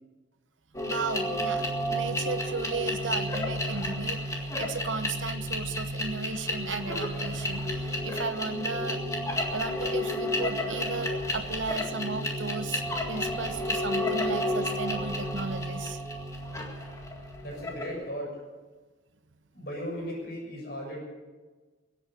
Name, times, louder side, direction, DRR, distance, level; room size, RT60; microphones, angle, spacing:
sound 1, 0.7-18.0, left 1 dB, 15° left, 1.9 m, -31 dB
voice 1, 0.9-9.0 9.5-12.8 13.1-16.0, right 4 dB, 80° right, 11 dB, 1.0 m, -35 dB
voice 2, 17.4-18.3 19.5-21.0, equal, 55° left, -1 dB, 6.8 m, -36 dB
22.5 x 8.7 x 6.7 m, 1.3 s
head